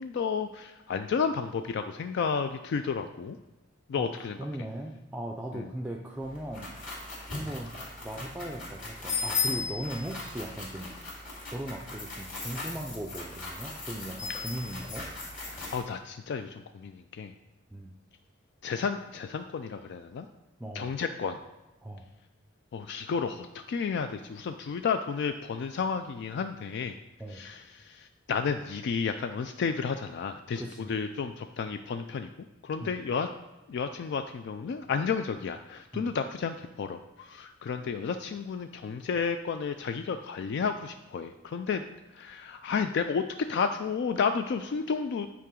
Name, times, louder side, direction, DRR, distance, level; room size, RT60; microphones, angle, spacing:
voice 1, 0.0-3.4 3.9-4.4 5.5-5.7 7.3-7.4 15.5-17.3 18.6-20.3 20.7-21.4 22.7-26.9 27.3-32.3 32.6-33.3 33.7-41.8 42.1-45.3, left 5 dB, 60° left, 8 dB, 0.3 m, -32 dB
voice 2, 4.4-7.0 7.3-10.9 11.5-15.1 17.7-17.9 20.6-20.9 21.8-22.1 27.2-27.4 30.6-30.9 32.8-32.9 35.9-36.1, right 1 dB, 5° right, 1 dB, 0.4 m, -38 dB
sound 1, 6.2-15.8, left 4 dB, 45° left, 2.3 m, -37 dB
8.4 x 4.9 x 3.7 m, 1.0 s
head